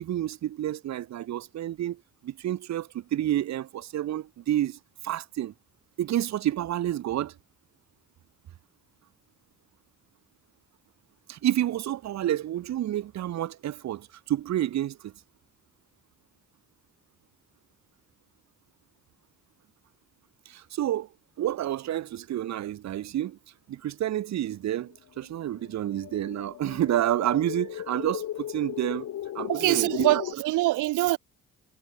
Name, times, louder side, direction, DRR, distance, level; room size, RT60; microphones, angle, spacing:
voice 1, 0.0-4.8 5.0-5.5 6.0-7.3 11.3-15.1 20.5-21.1 21.4-23.4 23.7-30.2, right 12 dB, 65° right, 1.1 m, -29 dB
sound 1, 25.2-30.3, left 12 dB, 70° left, 2.1 m, -37 dB
voice 2, 29.5-31.2, right 17 dB, 85° right, 1.0 m, -24 dB
cardioid pair, 90°, 30 cm